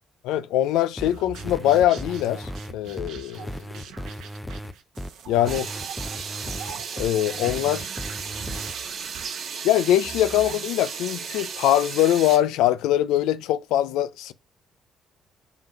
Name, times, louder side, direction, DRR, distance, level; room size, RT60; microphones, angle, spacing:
voice 1, 0.2-3.8 5.3-5.7 7.0-7.9 9.6-14.3, left 12 dB, 85° left, 0.5 m, -22 dB
sound 1, 1.0-8.7, equal, 10° left, 0.5 m, -36 dB
sound 2, 1.0-10.7, right 7 dB, 80° right, 1.2 m, -43 dB
sound 3, 5.5-12.4, right 6 dB, 65° right, 1.4 m, -35 dB
5.4 x 3.8 x 5.9 m
cardioid pair, 80°, 0 cm